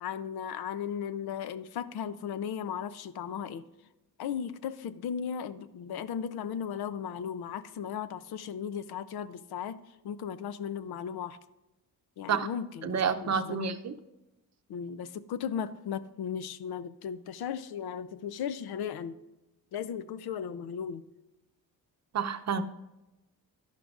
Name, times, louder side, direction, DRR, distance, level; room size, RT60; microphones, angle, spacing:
voice 1, 0.0-3.7 4.2-9.8 10.0-11.4 12.2-13.7 14.7-19.2 19.7-21.0, left 8 dB, 85° left, 14 dB, 0.6 m, -36 dB
voice 2, 12.8-13.9 22.1-22.6, right 6 dB, 45° right, 9 dB, 0.7 m, -29 dB
11.5 x 11.5 x 2.5 m, 0.99 s
cardioid pair, 135°, 37 cm